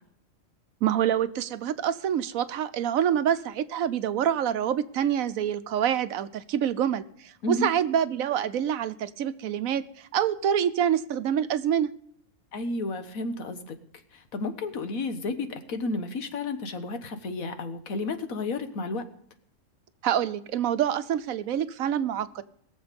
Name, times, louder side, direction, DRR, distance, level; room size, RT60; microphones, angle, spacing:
voice 1, 0.8-9.8 10.1-11.9 20.0-22.4, right 9 dB, 85° right, 13 dB, 1.2 m, -26 dB
voice 2, 12.5-13.7 14.1-19.1, left 3 dB, 85° left, 8 dB, 1.7 m, -32 dB
21.5 x 7.3 x 5.2 m, 0.66 s
omnidirectional pair, 1.4 m